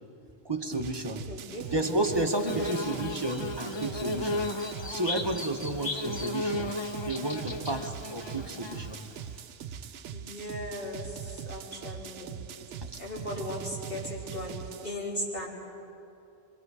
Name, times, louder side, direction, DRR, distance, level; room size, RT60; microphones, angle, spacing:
voice 1, 0.4-1.3 1.7-4.5 4.9-6.7 7.1-9.0, right 2 dB, 20° right, 3 dB, 1.1 m, -32 dB
sound 1, 0.7-14.9, right 8 dB, 75° right, 1.0 m, -42 dB
voice 2, 1.3-1.7 2.5-2.7 10.1-12.5 13.0-15.5, left 1 dB, 50° left, -5 dB, 4.0 m, -37 dB
Bird / Buzz, 1.7-9.4, left 2 dB, 25° left, 0.7 m, -35 dB
26.0 x 24.0 x 4.9 m, 2.7 s
omnidirectional pair, 1.2 m